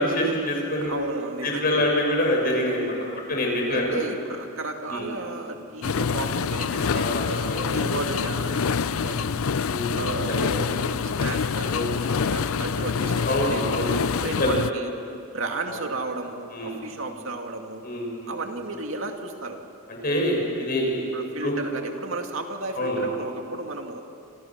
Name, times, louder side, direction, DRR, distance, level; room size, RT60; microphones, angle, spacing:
voice 1, 0.0-1.0 1.4-2.9 3.3-4.0 4.9-5.1 6.9-7.7 9.6-10.7 11.7-12.1 13.2-13.9 14.4-14.6 15.7-15.8 16.5-16.8 17.8-18.3 20.0-21.1 21.4-21.6 22.8-23.1, left 1 dB, 45° left, 0 dB, 6.7 m, -26 dB
voice 2, 0.8-1.8 3.1-3.3 3.7-9.5 10.0-14.9 15.3-17.8 18.3-19.6 21.1-24.0, right 2 dB, 65° right, 3 dB, 2.5 m, -34 dB
sound 1, 5.8-14.7, left 6 dB, 75° left, 0.5 m, -26 dB
28.0 x 27.5 x 6.1 m, 2.6 s
head